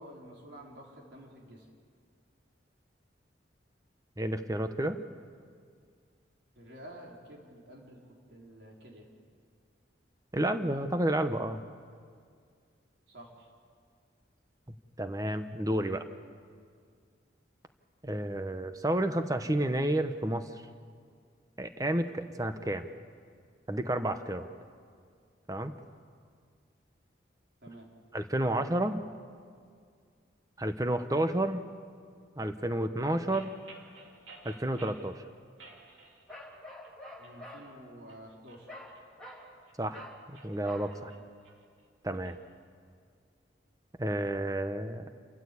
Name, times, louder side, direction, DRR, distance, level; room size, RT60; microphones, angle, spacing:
voice 1, 0.0-1.7 6.6-9.1 13.1-13.5 27.6-27.9 37.2-38.7 41.0-41.1, equal, 65° right, -1 dB, 4.2 m, -50 dB
voice 2, 4.2-5.0 10.3-11.6 14.7-16.1 18.0-20.5 21.6-22.9 23.7-24.5 25.5-25.7 28.1-29.0 30.6-31.6 32.4-33.5 34.4-35.2 39.8-41.1 42.0-42.4 44.0-45.1, right 1 dB, 20° right, 9 dB, 0.9 m, -31 dB
sound 1, 33.3-35.1 35.6-36.6 36.8-37.4 37.9-39.8 40.2-42.4, right 3 dB, 85° right, 2.6 m, -54 dB
Bark, 36.3-37.7 38.7-38.9 39.2-39.5 39.9-40.2 40.6-40.9, left 1 dB, 5° left, 3.0 m, -47 dB
28.5 x 14.0 x 8.4 m, 2.1 s
head